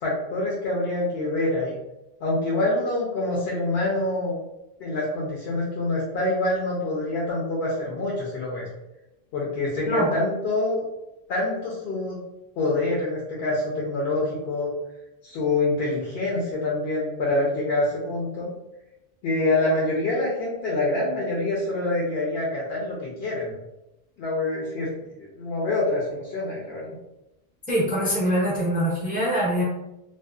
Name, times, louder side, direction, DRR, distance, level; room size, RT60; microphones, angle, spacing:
voice 1, 0.0-1.8 2.2-4.3 4.8-8.7 9.3-10.8 11.3-12.2 12.6-14.7 15.2-18.5 19.2-23.6 24.2-24.9 25.1-27.0, left 2 dB, 75° left, -4 dB, 0.8 m, -26 dB
voice 2, 27.7-29.6, equal, 15° right, -4 dB, 0.4 m, -23 dB
2.6 x 2.1 x 2.3 m, 0.93 s
omnidirectional pair, 1.1 m